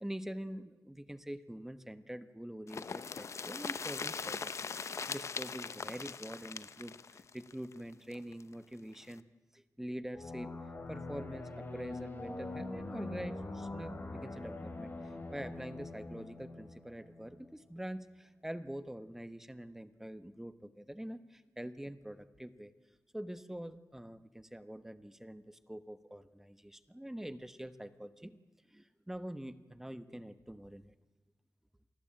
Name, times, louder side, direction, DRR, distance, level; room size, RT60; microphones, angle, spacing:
voice 1, 0.0-9.2 9.5-10.5 10.9-22.7 23.1-28.4 28.7-30.9, right 1 dB, 5° right, 12 dB, 1.1 m, -45 dB
sound 1, 2.7-8.4 8.7-8.8 9.1-9.2, left 5 dB, 55° left, 0.8 m, -41 dB
sound 2, 10.1-17.5, left 2 dB, 35° left, 3.8 m, -43 dB
27.5 x 20.0 x 8.9 m, 1.2 s
wide cardioid pair, 175°, 6 cm